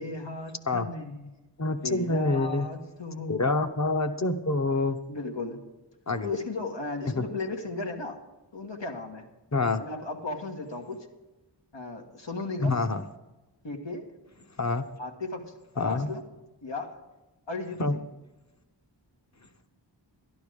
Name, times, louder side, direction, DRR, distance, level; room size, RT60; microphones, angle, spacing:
voice 1, 0.0-1.4 1.8-3.5 5.1-5.6 6.2-8.2 8.5-9.3 9.8-11.1 11.7-12.8 13.6-14.1 15.0-16.2 16.6-16.9 17.5-18.0, left 3 dB, 90° left, 1 dB, 1.7 m, -36 dB
voice 2, 1.6-2.7 3.3-5.0 6.1-6.3 7.1-7.2 9.5-9.8 12.6-13.0 14.6-14.9 15.8-16.1 17.8-18.0, left 3 dB, 40° left, 8 dB, 0.9 m, -26 dB
11.5 x 11.5 x 5.1 m, 1.0 s
wide cardioid pair, 45°, 43 cm